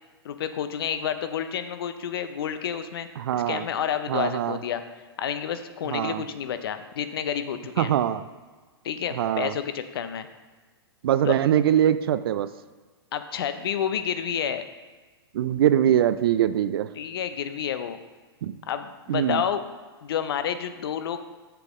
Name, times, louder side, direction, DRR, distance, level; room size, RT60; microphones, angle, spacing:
voice 1, 0.2-3.1 3.3-4.8 5.2-7.9 8.8-10.3 11.3-11.4 13.1-14.6 17.0-18.0 18.7-19.6 20.0-21.2, left 9 dB, 65° left, 10 dB, 0.6 m, -29 dB
voice 2, 3.2-3.6 4.1-4.6 5.9-6.2 7.8-8.2 9.2-9.5 11.0-12.5 15.3-16.9 18.4-18.5 19.1-19.4, right 10 dB, 65° right, 13 dB, 0.4 m, -22 dB
7.0 x 6.8 x 3.6 m, 1.4 s
hypercardioid pair, 115°, 13 cm